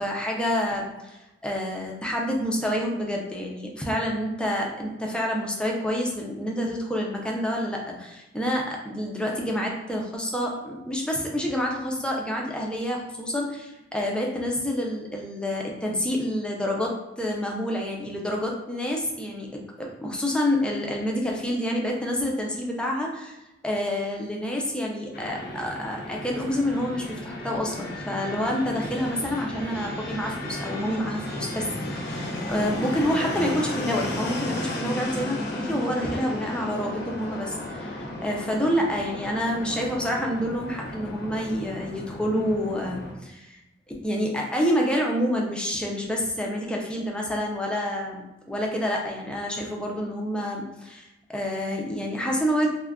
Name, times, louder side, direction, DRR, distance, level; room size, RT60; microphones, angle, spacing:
voice 1, 0.0-23.4 23.6-43.6 44.0-52.7, equal, 5° left, -1 dB, 0.4 m, -28 dB
Fixed-wing aircraft airplane, 25.1-43.1, left 1 dB, 55° left, 0.6 m, -34 dB
2.3 x 2.1 x 3.5 m, 0.98 s
head